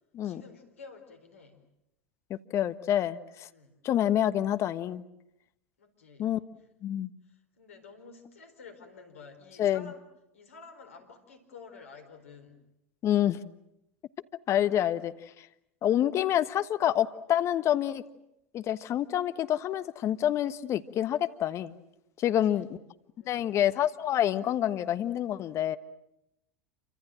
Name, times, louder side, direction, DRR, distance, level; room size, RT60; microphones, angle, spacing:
voice 1, 0.2-1.6 3.5-3.8 5.8-6.3 7.2-10.0 10.3-12.7 22.2-22.7 23.2-23.5, left 5 dB, 80° left, 7 dB, 4.2 m, -51 dB
voice 2, 2.3-3.5 3.8-5.0 6.2-6.4 6.8-7.1 9.6-9.9 13.0-13.4 14.5-15.5 15.8-18.0 18.5-21.8 22.2-22.7 23.3-25.8, left 11 dB, 40° left, 11 dB, 1.4 m, -27 dB
28.5 x 25.5 x 7.6 m, 0.83 s
hypercardioid pair, 80°, 7 cm